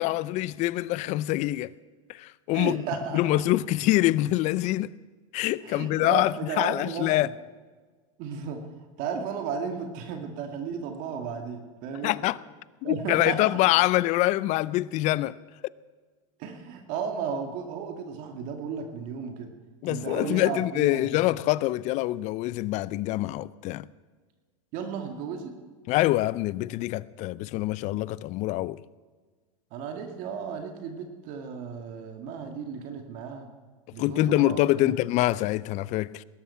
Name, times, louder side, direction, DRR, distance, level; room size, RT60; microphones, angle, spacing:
voice 1, 0.0-1.7 2.1-2.8 3.1-4.9 5.3-7.3 12.0-12.4 12.8-15.4 19.8-23.9 25.9-28.8 34.0-36.2, left 17 dB, 45° left, 0.5 m, -25 dB
voice 2, 2.5-3.4 5.6-7.3 8.2-8.7 9.0-12.3 12.8-13.6 16.4-19.5 19.8-21.2 24.7-25.6 29.7-33.5 33.9-35.0, right 6 dB, 50° right, 2.1 m, -34 dB
20.0 x 11.5 x 5.7 m
supercardioid pair, 115°, 17 cm